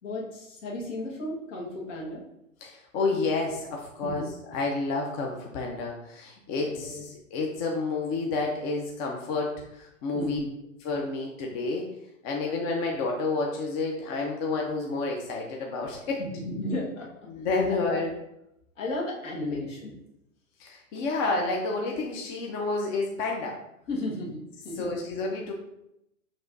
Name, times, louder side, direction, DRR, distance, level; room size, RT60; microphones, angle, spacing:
voice 1, 0.0-2.2 4.0-4.2 6.6-7.0 10.1-10.5 16.2-17.1 17.7-18.1 18.8-19.9 23.9-24.9, left 1 dB, 65° left, -3 dB, 1.5 m, -34 dB
voice 2, 2.6-10.4 10.8-11.9 12.2-16.2 17.3-18.1 20.6-23.6 24.8-25.5, left 3 dB, 30° left, 0 dB, 0.6 m, -30 dB
6.1 x 3.1 x 2.6 m, 0.83 s
hypercardioid pair, 115°, 40 cm